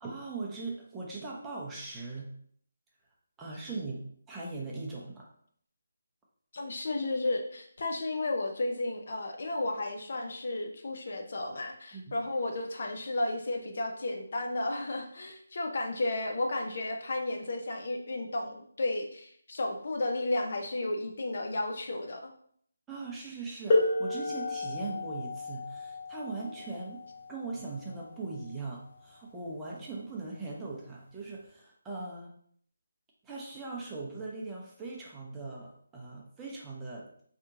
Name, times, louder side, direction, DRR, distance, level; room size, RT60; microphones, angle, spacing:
voice 1, 0.0-2.3 3.4-5.3 11.9-12.0 22.9-27.0 27.3-32.3 33.2-37.1, right 3 dB, 10° right, -3 dB, 0.6 m, -40 dB
voice 2, 6.5-22.3, left 2 dB, 55° left, 3 dB, 0.5 m, -33 dB
sound 1, 23.7-29.1 30.2-30.3 31.1-31.3, left 2 dB, 35° left, 0.9 m, -32 dB
2.8 x 2.5 x 3.6 m, 0.62 s
figure-of-eight pair, 160°, 0 cm